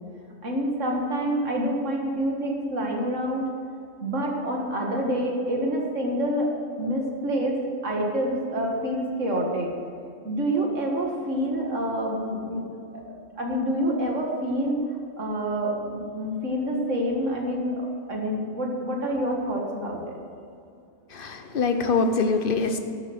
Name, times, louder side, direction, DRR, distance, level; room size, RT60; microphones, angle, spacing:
voice 1, 0.4-3.5 4.0-6.5 6.8-9.7 10.2-12.7 13.0-14.8 15.2-20.0, equal, 65° right, 0 dB, 2.2 m, -27 dB
voice 2, 21.1-22.8, left 4 dB, 45° left, 7 dB, 1.0 m, -24 dB
12.0 x 7.0 x 7.9 m, 2.6 s
omnidirectional pair, 1.4 m